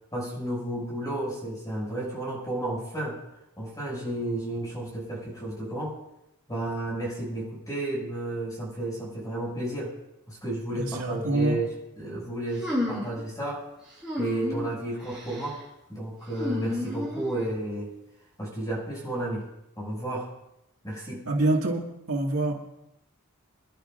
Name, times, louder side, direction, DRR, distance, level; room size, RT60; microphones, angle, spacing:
voice 1, 0.1-3.2 3.6-6.0 6.5-9.9 10.3-13.7 14.2-15.6 15.9-17.9 18.4-19.5 19.8-20.3 20.8-21.3, right 1 dB, 15° left, -4 dB, 6.4 m, -32 dB
voice 2, 10.7-11.6 21.3-22.6, right 2 dB, 85° right, 0 dB, 2.0 m, -26 dB
sound 1, 12.6-13.2 14.0-14.7 15.1-15.5 16.3-17.5, left 1 dB, 5° right, 6.1 m, -31 dB
26.0 x 11.5 x 2.5 m, 0.87 s
head